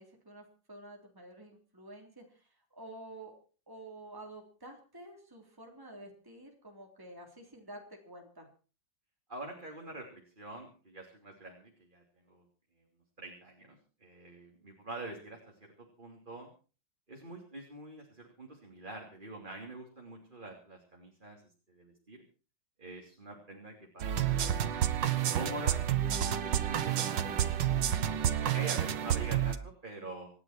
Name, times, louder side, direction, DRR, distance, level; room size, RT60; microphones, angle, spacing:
voice 1, 0.0-3.3 3.7-8.5, right 1 dB, 10° right, 1 dB, 3.5 m, -50 dB
voice 2, 9.3-12.4 13.2-16.5 17.1-21.4 21.7-22.2 22.8-27.9 28.4-30.3, right 2 dB, 25° right, 1 dB, 3.2 m, -46 dB
sound 1, 24.0-29.6, right 10 dB, 90° right, 1.9 m, -30 dB
26.5 x 11.0 x 4.5 m, 0.38 s
omnidirectional pair, 1.9 m